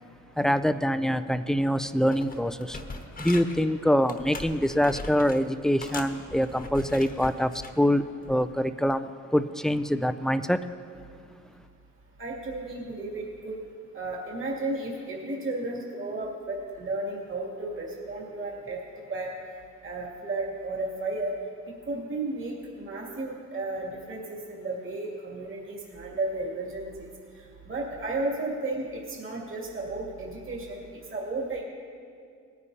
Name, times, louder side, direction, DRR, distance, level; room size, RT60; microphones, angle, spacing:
voice 1, 0.4-2.8 3.2-10.7, equal, ahead, 11 dB, 0.3 m, -25 dB
sound 1, 1.7-1.8 2.1-3.6 4.1-5.4 5.8-7.8 8.3-8.5, left 3 dB, 30° left, 1.1 m, -40 dB
voice 2, 12.2-13.5 13.9-18.8 19.1-19.3 19.8-21.3 21.9-27.1 27.7-30.8 31.1-31.6, right 2 dB, 40° right, -3 dB, 2.5 m, -33 dB
18.5 x 9.8 x 2.8 m, 2.3 s
cardioid pair, 90°, 30 cm